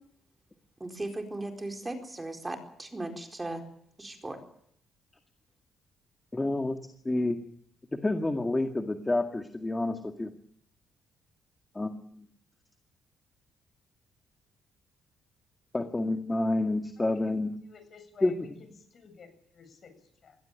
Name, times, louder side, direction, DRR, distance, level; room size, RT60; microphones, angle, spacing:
voice 1, 0.8-3.6 4.0-4.4, right 2 dB, 15° right, 4 dB, 4.4 m, -37 dB
voice 2, 6.3-6.8 7.0-7.4 8.0-10.3 11.8-12.3 15.7-17.5 18.2-18.5, left 2 dB, 15° left, 6 dB, 2.0 m, -29 dB
voice 3, 17.1-20.4, left 5 dB, 50° left, 8 dB, 8.0 m, -52 dB
21.0 x 16.5 x 9.1 m, 0.67 s
cardioid pair, 90°, 0 cm